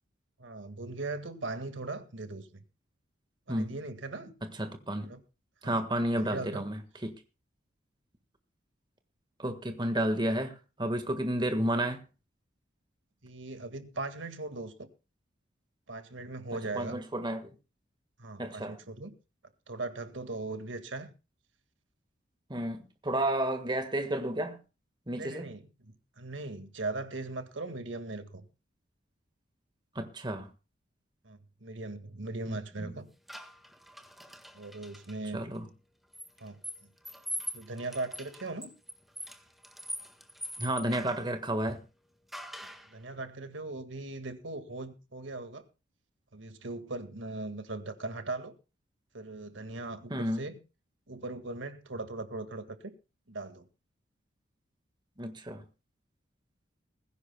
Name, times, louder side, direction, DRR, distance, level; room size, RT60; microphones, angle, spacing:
voice 1, 0.4-2.6 3.5-4.3 5.0-5.2 5.6-5.8 6.2-6.6 13.2-14.9 15.9-17.0 18.2-19.1 19.7-21.1 25.1-28.5 31.2-33.1 34.5-35.4 36.4-36.6 37.5-38.7 42.9-45.6 46.3-48.5 49.1-50.6 51.1-52.9 53.3-53.7, right 2 dB, 75° right, 1.9 m, -39 dB
voice 2, 4.4-5.1 5.6-7.2 9.4-12.0 16.7-17.5 18.4-18.8 22.5-24.6 25.1-25.5 29.9-30.5 32.5-32.9 35.3-35.7 40.6-41.8 50.1-50.4 55.2-55.6, right 1 dB, 25° right, 1.6 m, -32 dB
sound 1, 33.3-35.2 36.1-41.3 42.3-42.9, equal, ahead, 1.6 m, -42 dB
20.5 x 16.0 x 2.3 m
head